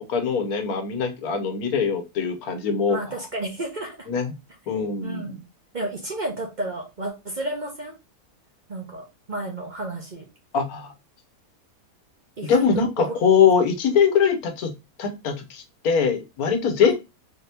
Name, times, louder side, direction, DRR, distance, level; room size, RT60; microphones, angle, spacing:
voice 1, 0.0-3.0 4.1-4.3 4.7-5.3 10.5-10.9 12.4-14.7 15.0-16.9, left 6 dB, 80° left, 6 dB, 1.3 m, -22 dB
voice 2, 2.9-4.1 5.0-5.4 5.7-8.0 8.7-10.2 12.4-13.1 16.9-17.0, right 2 dB, 40° right, 1 dB, 0.8 m, -32 dB
4.2 x 2.8 x 3.3 m, 0.26 s
omnidirectional pair, 1.5 m